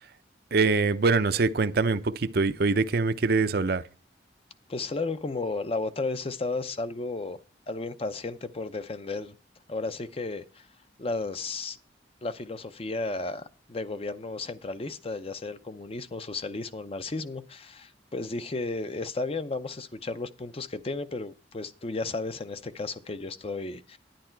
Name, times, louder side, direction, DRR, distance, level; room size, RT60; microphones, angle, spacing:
voice 1, 0.5-3.8, right 4 dB, 55° right, 0.6 m, -24 dB
voice 2, 4.7-7.4 7.7-9.3 9.7-10.7 11.0-11.8 12.2-24.0, left 3 dB, 30° left, 0.6 m, -33 dB
10.5 x 9.7 x 4.5 m
head